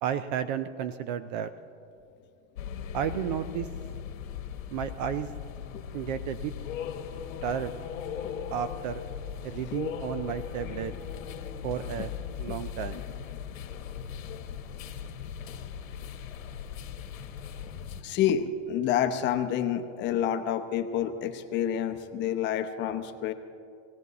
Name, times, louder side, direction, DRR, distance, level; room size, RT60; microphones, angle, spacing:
voice 1, 0.0-1.5 2.9-3.7 4.7-5.3 5.9-6.5 7.4-7.7 8.5-9.0 9.4-10.9 11.6-12.1 12.4-13.0, right 9 dB, 35° right, 13 dB, 0.4 m, -32 dB
sound 1, 2.5-18.0, left 8 dB, 85° left, 1.6 m, -38 dB
voice 2, 18.0-23.3, left 9 dB, 30° left, 8 dB, 0.8 m, -28 dB
19.5 x 16.5 x 4.1 m, 2.4 s
supercardioid pair, 145°, 39 cm